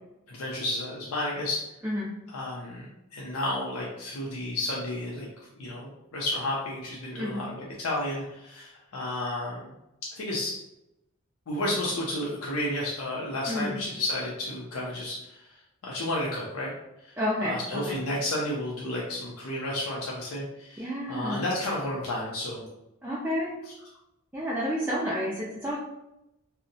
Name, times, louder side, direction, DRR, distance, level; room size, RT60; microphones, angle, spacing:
voice 1, 0.3-1.6 2.3-2.9 3.1-5.3 5.6-9.7 10.2-10.6 11.5-15.4 15.8-16.7 17.4-22.6, left 1 dB, 90° left, -4 dB, 0.5 m, -32 dB
voice 2, 17.2-18.0 20.8-21.5 23.0-23.6 24.3-25.8, equal, 10° right, -8 dB, 0.3 m, -30 dB
2.6 x 2.1 x 2.6 m, 0.90 s
head